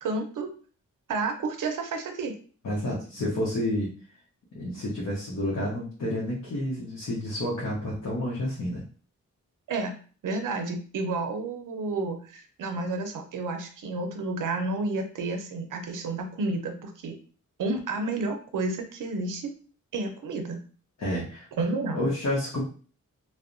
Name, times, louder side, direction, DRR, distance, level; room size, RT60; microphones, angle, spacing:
voice 1, 0.0-0.5 1.1-2.3 9.7-9.9 10.2-17.1 17.6-19.5 19.9-20.6 21.6-22.1, right 3 dB, 75° right, 5 dB, 0.5 m, -30 dB
voice 2, 2.6-3.9 4.5-8.8 21.0-21.5 21.9-22.6, left 1 dB, 55° left, -5 dB, 0.8 m, -29 dB
2.7 x 2.1 x 2.5 m, 0.40 s
wide cardioid pair, 75°, 32 cm